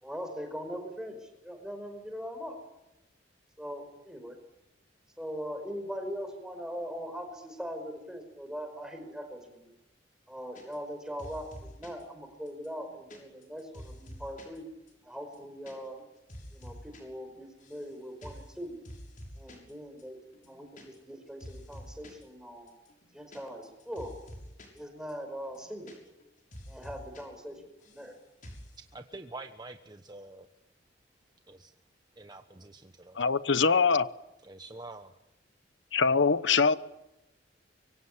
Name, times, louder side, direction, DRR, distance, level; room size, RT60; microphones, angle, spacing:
voice 1, 0.0-2.6 3.6-4.4 5.2-9.6 10.3-14.7 15.0-16.0 16.5-18.8 19.4-20.2 20.5-22.7 23.1-24.2 24.7-25.9 26.7-28.1, equal, 5° right, 5.2 m, -41 dB
sound 1, 10.5-10.9 11.2-12.0 12.5-14.6 14.9-15.0 15.2-15.7 16.0-17.0 17.3-17.9 18.2-18.5 18.8-19.7 20.0-20.1 20.3-21.1 21.4-22.2 22.7-24.8 25.1-25.2 25.4-26.2 26.5-27.2 27.5-28.1 28.4-28.7, equal, 45° left, 6.8 m, -48 dB
voice 2, 28.8-30.5 31.5-31.7 32.2-33.2 34.4-35.1, right 2 dB, 20° right, 1.1 m, -46 dB
voice 3, 33.2-34.1 35.9-36.8, left 5 dB, 75° left, 1.0 m, -23 dB
24.5 x 23.5 x 9.9 m
head